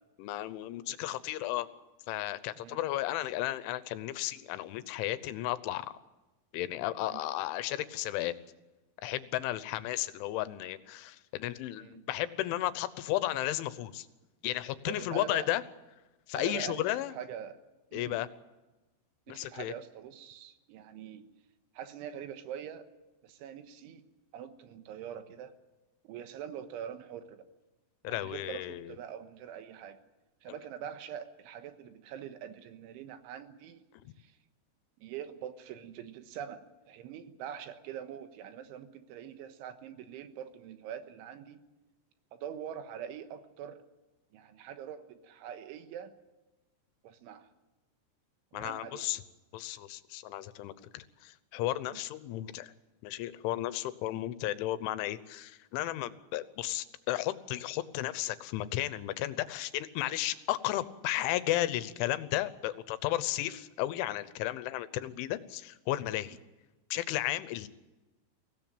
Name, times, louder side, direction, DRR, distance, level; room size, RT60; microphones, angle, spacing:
voice 1, 0.2-1.7 2.1-5.9 6.5-8.3 9.0-14.1 14.4-15.6 16.3-17.1 17.9-18.3 19.3-19.7 28.0-28.9 33.9-34.0 48.5-49.2 49.5-52.7 53.0-66.4 66.9-67.7, left 14 dB, 85° left, 14 dB, 3.3 m, -34 dB
voice 2, 14.9-15.5 16.4-17.6 17.9-18.2 19.3-21.3 21.8-22.9 23.2-24.0 24.3-25.6 26.1-27.5 28.1-30.0 30.4-33.8 34.2-34.4 35.0-41.6 42.3-43.9 44.3-46.1 47.0-47.5 48.5-49.1 51.9-52.0 54.1-54.3, right 9 dB, 85° right, 9 dB, 3.6 m, -44 dB
23.5 x 17.0 x 8.8 m, 1.1 s
omnidirectional pair, 5.5 m